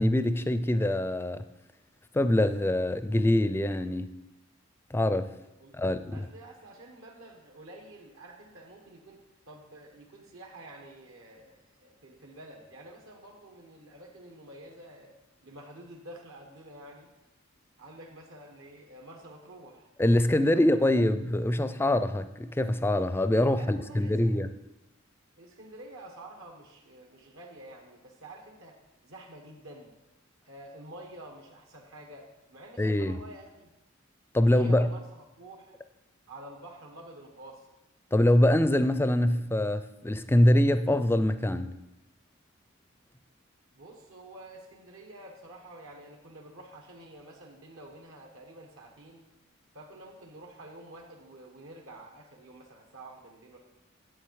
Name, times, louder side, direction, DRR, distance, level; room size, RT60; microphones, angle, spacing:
voice 1, 0.0-1.5 2.1-4.2 4.9-5.3 5.7-6.2 20.0-24.5 32.8-33.2 34.3-34.9 38.1-41.8, left 1 dB, 10° left, 0.4 m, -24 dB
voice 2, 6.1-9.2 9.4-15.2 15.4-17.1 17.8-19.9 20.5-20.9 23.2-24.4 25.4-28.8 29.0-29.9 30.4-33.7 34.4-35.8 36.3-37.7 43.7-49.3 49.7-53.6, right 1 dB, 80° right, 1.5 m, -49 dB
10.0 x 8.1 x 4.8 m
head